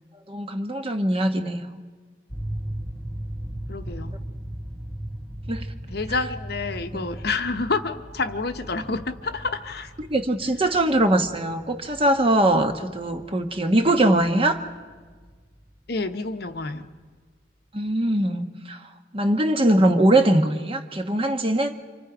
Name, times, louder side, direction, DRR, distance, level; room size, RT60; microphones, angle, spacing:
voice 1, 0.3-1.8 5.5-5.7 6.1-6.2 6.9-7.1 10.0-14.6 17.7-18.8 19.1-21.8, right 1 dB, 30° right, 1.1 m, -22 dB
sound 1, 2.3-17.2, right 1 dB, 10° right, 0.7 m, -38 dB
voice 2, 3.7-4.1 5.9-9.9 15.9-16.9, left 3 dB, 55° left, 1.0 m, -28 dB
29.5 x 25.5 x 5.0 m
head